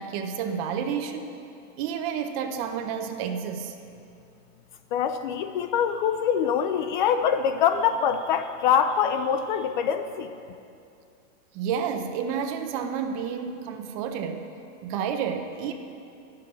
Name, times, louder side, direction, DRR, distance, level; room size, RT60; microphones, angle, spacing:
voice 1, 0.0-1.4 1.8-3.8 11.5-14.4 14.8-15.7, right 7 dB, 30° right, 6 dB, 0.6 m, -30 dB
voice 2, 4.9-10.3, left 8 dB, 40° left, 10 dB, 0.4 m, -24 dB
11.0 x 7.6 x 9.1 m, 2.5 s
supercardioid pair, 170°, 39 cm